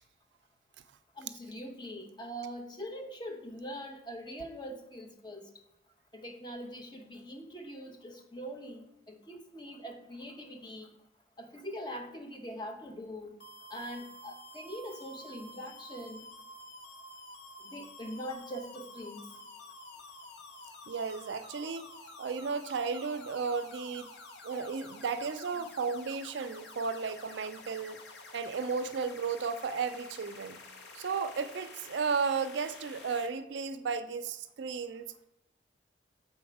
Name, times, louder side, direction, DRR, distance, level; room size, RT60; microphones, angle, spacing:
voice 1, 1.2-5.5 6.1-10.9 11.4-13.3 13.7-16.3 17.6-19.3, equal, 25° left, 3 dB, 0.7 m, -43 dB
sound 1, 13.4-33.3, left 2 dB, 65° left, 0.8 m, -50 dB
voice 2, 20.9-21.8 22.2-24.1 24.4-28.0 28.3-30.6 30.9-35.1, right 5 dB, 70° right, 11 dB, 0.4 m, -34 dB
7.0 x 4.0 x 4.7 m, 0.88 s
head